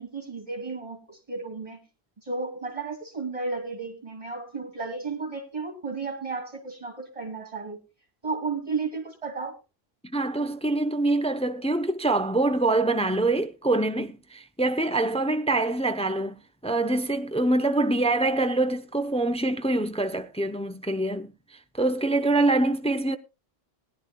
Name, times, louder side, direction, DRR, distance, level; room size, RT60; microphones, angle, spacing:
voice 1, 0.0-1.8 2.2-7.8 8.2-9.6, right 4 dB, 30° right, 2.6 m, -33 dB
voice 2, 10.0-23.2, right 2 dB, 5° left, 0.6 m, -25 dB
20.5 x 10.5 x 2.3 m
omnidirectional pair, 1.1 m